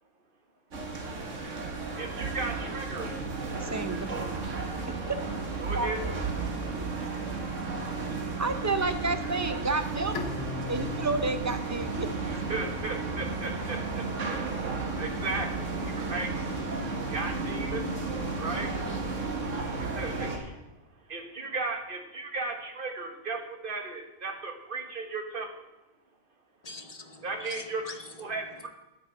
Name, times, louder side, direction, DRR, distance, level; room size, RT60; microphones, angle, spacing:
sound 1, 0.7-20.4, right 3 dB, 85° right, 1.9 m, -33 dB
voice 1, 1.9-3.2 5.6-6.0 12.2-14.4 15.0-16.3 17.1-17.9 18.4-18.7 19.7-20.6 21.1-25.7 27.2-27.8 28.2-28.7, right 3 dB, 45° right, 5 dB, 1.6 m, -35 dB
voice 2, 3.5-4.1 5.7-6.2 8.4-10.1 10.7-12.1, right 3 dB, 20° right, 9 dB, 0.4 m, -30 dB
Bowed string instrument, 10.1-13.4, left 6 dB, 70° left, 1.3 m, -41 dB
voice 3, 26.6-28.4, left 3 dB, 35° left, 7 dB, 0.9 m, -44 dB
9.6 x 9.1 x 6.8 m, 1.0 s
omnidirectional pair, 1.3 m